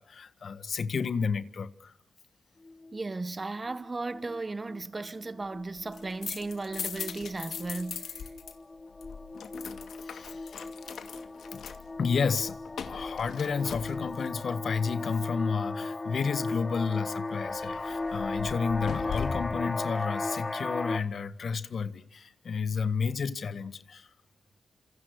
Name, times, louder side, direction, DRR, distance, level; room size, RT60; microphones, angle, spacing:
voice 1, 0.0-1.9 10.0-10.7 11.5-11.6 12.0-12.6 12.9-24.1, left 5 dB, 65° left, 1.6 m, -31 dB
sound 1, 2.6-3.1 3.7-3.9 4.1-4.4 4.7-21.0, left 2 dB, 30° left, 1.4 m, -37 dB
voice 2, 2.9-8.3, right 3 dB, 35° right, 1.5 m, -36 dB
sound 2, 5.8-8.5 8.8-14.4 17.4-19.7, left 7 dB, 80° left, 2.4 m, -40 dB
27.5 x 27.0 x 6.6 m
cardioid pair, 60°, 0 cm